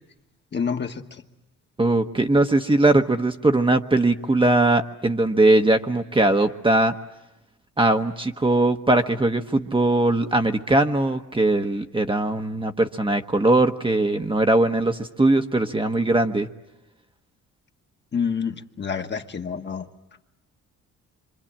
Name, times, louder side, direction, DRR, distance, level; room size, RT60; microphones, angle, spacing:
voice 1, 0.5-1.0 18.1-19.9, left 6 dB, 35° left, 4 dB, 1.4 m, -27 dB
voice 2, 1.8-6.9 7.8-16.5, right 2 dB, 15° right, 5 dB, 1.1 m, -20 dB
26.5 x 25.5 x 8.8 m, 1.0 s
cardioid pair, 90°, 30 cm